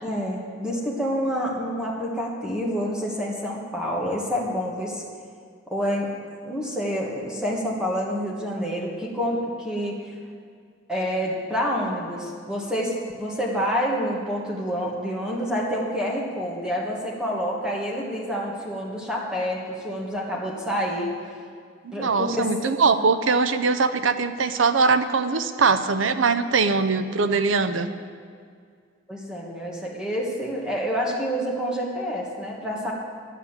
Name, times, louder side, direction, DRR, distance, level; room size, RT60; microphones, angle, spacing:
voice 1, 0.0-5.0 5.7-6.1 6.4-9.9 10.9-12.9 13.2-21.1 21.9-22.8 29.1-32.9, equal, 5° right, -3 dB, 1.5 m, -28 dB
voice 2, 21.8-27.9, right 4 dB, 90° right, 11 dB, 0.7 m, -22 dB
11.0 x 8.3 x 7.3 m, 2.1 s
head